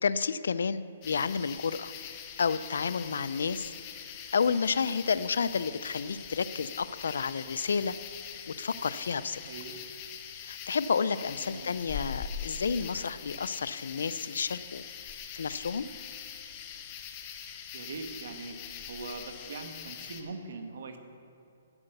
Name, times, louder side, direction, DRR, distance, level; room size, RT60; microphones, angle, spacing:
voice 1, 0.0-1.9 2.4-3.7 4.3-7.9 8.5-9.4 10.4-14.8 15.3-15.8, left 5 dB, 75° left, 15 dB, 0.5 m, -30 dB
sound 1, 1.0-20.2, left 8 dB, 25° left, 0.9 m, -43 dB
voice 2, 9.4-9.8 11.4-11.8 17.7-18.6 18.9-21.0, right 4 dB, 65° right, 6 dB, 1.4 m, -41 dB
11.0 x 9.1 x 6.6 m, 2.5 s
hypercardioid pair, 160°, 0 cm